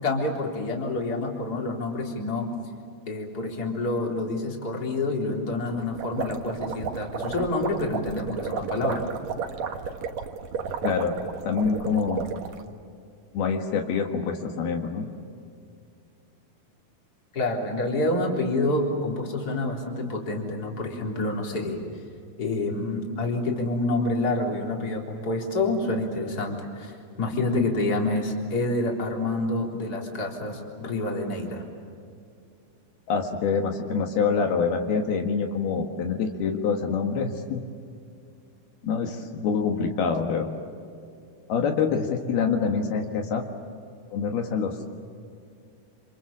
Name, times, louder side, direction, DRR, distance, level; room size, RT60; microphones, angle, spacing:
voice 1, 0.0-2.5 3.1-9.1 17.3-21.8 22.4-31.6, left 2 dB, 25° left, 0 dB, 3.9 m, -28 dB
sound 1, 5.8-12.6, right 6 dB, 55° right, 2.3 m, -33 dB
voice 2, 10.8-12.3 13.3-15.1 33.1-37.6 38.8-40.5 41.5-43.4 44.1-44.9, left 5 dB, 75° left, 3 dB, 3.5 m, -26 dB
29.0 x 27.0 x 7.4 m, 2.4 s
omnidirectional pair, 4.6 m